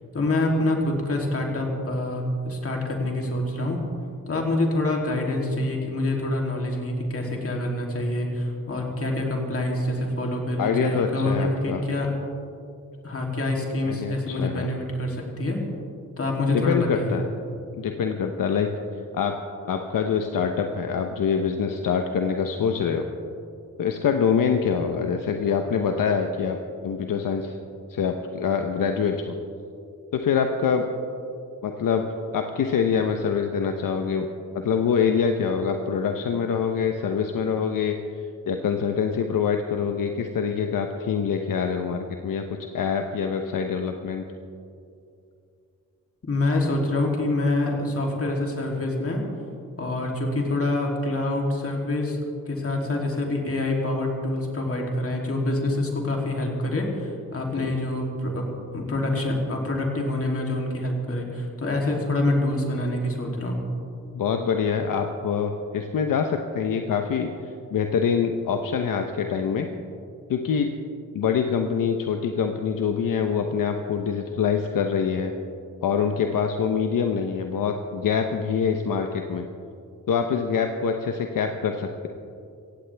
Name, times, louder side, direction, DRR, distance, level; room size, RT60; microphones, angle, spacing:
voice 1, 0.1-3.8 4.3-12.1 13.0-15.6 16.2-17.2 46.3-49.2 49.8-52.2 52.5-58.4 58.7-63.6, left 2 dB, 40° left, 0 dB, 3.0 m, -26 dB
voice 2, 10.6-11.8 13.8-14.7 16.5-17.2 17.7-18.7 19.1-19.4 19.7-23.0 23.8-26.6 26.8-27.6 27.9-29.3 30.1-30.8 31.6-32.1 32.3-34.3 34.5-38.2 38.5-42.5 42.7-44.3 57.5-57.8 64.1-69.7 70.3-70.7 71.1-75.3 75.8-79.4 80.1-82.1, left 6 dB, 70° left, 5 dB, 0.9 m, -25 dB
16.5 x 16.5 x 3.4 m, 2.5 s
cardioid pair, 85°, 34 cm